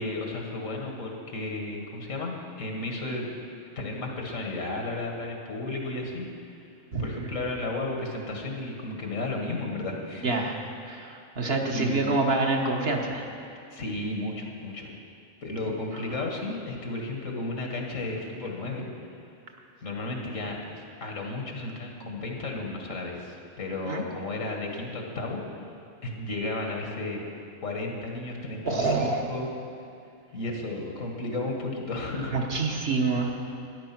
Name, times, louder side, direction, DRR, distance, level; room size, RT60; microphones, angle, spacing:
voice 1, 0.0-3.4 3.8-6.6 7.0-10.3 11.7-12.0 13.7-14.9 15.4-18.9 19.8-25.4 26.0-27.3 27.6-29.5 30.3-32.4, left 2 dB, 90° left, 1 dB, 2.1 m, -33 dB
voice 2, 10.2-10.6 10.9-13.2 23.9-24.0 28.6-29.2 32.3-33.3, right 3 dB, 55° right, 1 dB, 1.4 m, -26 dB
13.0 x 10.5 x 6.0 m, 2.5 s
omnidirectional pair, 1.3 m